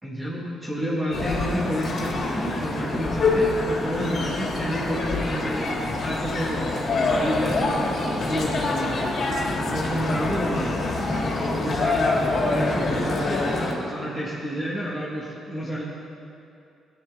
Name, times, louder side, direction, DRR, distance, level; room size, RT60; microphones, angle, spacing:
voice 1, 0.0-15.8, equal, 10° right, -7 dB, 1.8 m, -30 dB
sound 1, 1.1-13.7, left 2 dB, 50° left, 1.9 m, -26 dB
14.0 x 9.3 x 3.6 m, 2.6 s
cardioid pair, 90°, 0 cm